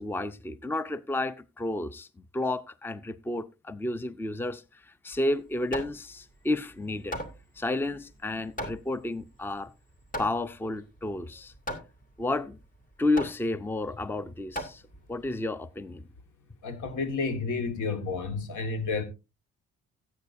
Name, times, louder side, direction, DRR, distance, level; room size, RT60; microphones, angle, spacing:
voice 1, 0.0-2.1 2.3-7.2 7.6-9.7 10.2-11.5 12.2-12.6 13.0-14.8 15.1-16.0, left 2 dB, 5° left, 0.6 m, -31 dB
Hammer, 5.1-15.3, equal, 25° left, 2.7 m, -40 dB
voice 2, 16.6-19.0, left 4 dB, 80° left, 1.9 m, -31 dB
16.5 x 8.5 x 2.7 m
cardioid pair, 90°, 30 cm